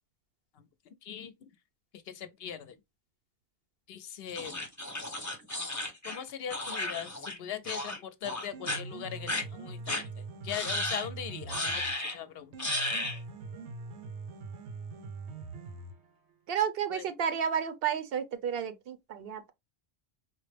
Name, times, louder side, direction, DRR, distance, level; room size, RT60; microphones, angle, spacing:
voice 1, 1.0-1.3 2.1-2.8 3.9-4.5 6.0-10.0 10.4-12.5 16.9-17.1, left 9 dB, 70° left, 0.7 m, -40 dB
sound 1, 4.4-7.4 7.6-8.0 8.2-8.8 9.3-9.4 9.9-10.0 10.5-11.1 11.5-12.2 12.6-13.2, left 1 dB, 15° left, 0.8 m, -34 dB
Piano, 8.3-16.3, right 4 dB, 90° right, 1.0 m, -43 dB
voice 2, 16.5-19.5, right 8 dB, 65° right, 0.7 m, -31 dB
4.5 x 2.1 x 3.2 m
omnidirectional pair, 1.1 m